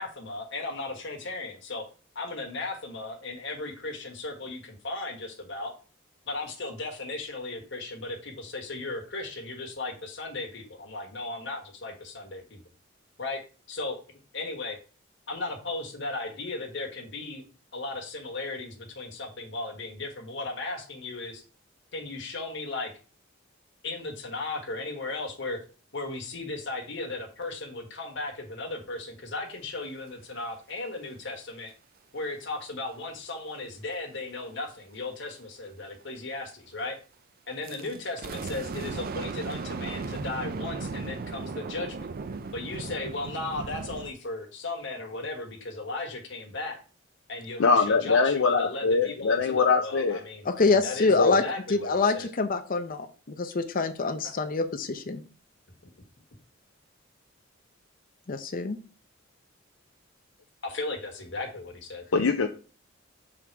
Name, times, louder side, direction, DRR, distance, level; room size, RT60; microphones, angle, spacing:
voice 1, 0.0-1.8 2.1-5.7 6.3-12.6 13.2-13.4 13.7-14.0 14.3-14.8 15.3-17.4 17.7-21.4 21.9-22.9 23.8-25.6 25.9-31.7 32.1-37.0 37.5-42.1 42.5-46.8 47.3-52.3 54.2-54.3 60.6-62.0, left 2 dB, 65° left, 2 dB, 1.4 m, -36 dB
sound 1, 37.6-44.1, right 4 dB, 50° right, 0.4 m, -36 dB
voice 2, 47.6-50.2 51.2-51.4 62.1-62.5, left 4 dB, 90° left, 5 dB, 0.5 m, -22 dB
voice 3, 50.4-51.4 51.7-55.2 58.3-58.8, left 3 dB, 45° left, 9 dB, 0.6 m, -26 dB
6.4 x 3.7 x 4.6 m, 0.36 s
head